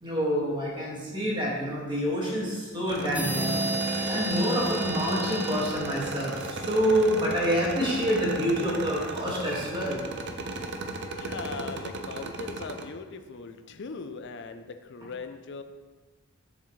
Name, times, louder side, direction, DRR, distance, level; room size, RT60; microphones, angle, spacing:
voice 1, 0.0-10.0, equal, 25° right, -5 dB, 2.0 m, -27 dB
sound 1, 2.9-12.8, right 2 dB, 60° right, 0.6 m, -36 dB
sound 2, 3.1-6.7, right 2 dB, 10° right, 0.7 m, -31 dB
voice 2, 11.2-15.6, left 4 dB, 60° left, 9 dB, 0.5 m, -39 dB
7.2 x 7.0 x 3.2 m, 1.3 s
head